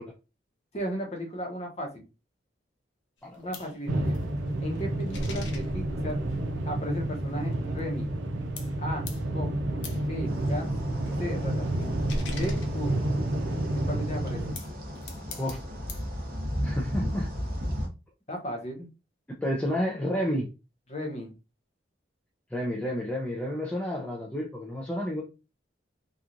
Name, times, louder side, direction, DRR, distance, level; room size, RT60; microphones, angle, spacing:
voice 1, 0.7-2.1 3.4-4.2 4.6-6.2 6.7-8.1 8.8-9.1 9.3-9.7 10.0-10.7 11.2-11.9 12.3-12.9 13.7-14.5 18.3-18.9 20.9-21.3, equal, 35° left, 0.8 m, -35 dB
sound 1, 3.2-8.3 8.6-13.6 14.3-16.1, left 1 dB, 75° left, 0.6 m, -42 dB
sound 2, 3.9-14.5, right 1 dB, 90° right, 0.6 m, -30 dB
sound 3, 10.3-17.9, equal, 50° right, 0.8 m, -35 dB
voice 2, 16.6-17.3 19.4-20.5 22.5-25.2, equal, 5° left, 0.4 m, -30 dB
3.0 x 2.3 x 2.4 m
head